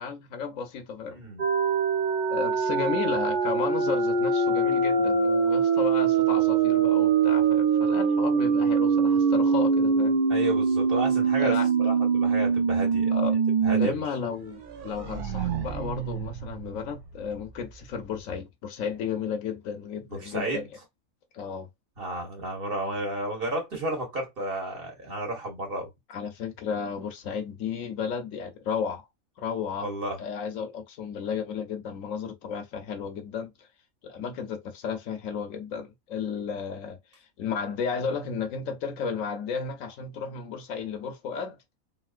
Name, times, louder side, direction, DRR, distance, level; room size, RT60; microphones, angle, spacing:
voice 1, 0.0-1.2 2.3-10.2 11.4-11.7 13.1-13.4 13.7-20.7 21.3-21.7 26.1-29.1 29.4-29.9 30.2-33.7 34.0-41.6, left 6 dB, 70° left, 1.0 m, -33 dB
voice 2, 1.1-1.4 10.3-13.1 13.6-14.0 20.1-20.7 22.0-25.9 29.8-30.2, right 1 dB, 45° right, 1.4 m, -32 dB
sound 1, 1.4-13.9 14.2-14.3 14.7-17.4, right 5 dB, 65° right, 0.5 m, -24 dB
3.0 x 2.7 x 2.4 m
omnidirectional pair, 1.5 m